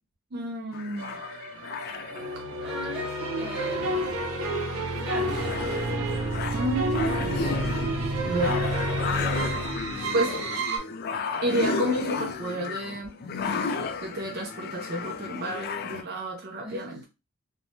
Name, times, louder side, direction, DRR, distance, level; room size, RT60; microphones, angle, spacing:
voice 1, 0.3-1.2 6.5-7.5 8.3-8.6 10.1-10.6 11.4-13.2 14.0-17.0, right 1 dB, 45° right, 0.4 m, -30 dB
sound 1, 0.7-16.0, left 4 dB, 45° left, 0.3 m, -34 dB
sound 2, 1.0-10.8, right 1 dB, 85° right, 0.6 m, -29 dB
voice 2, 2.6-4.6 5.0-5.5 16.6-17.1, equal, ahead, 1.1 m, -41 dB
3.1 x 2.1 x 2.7 m
head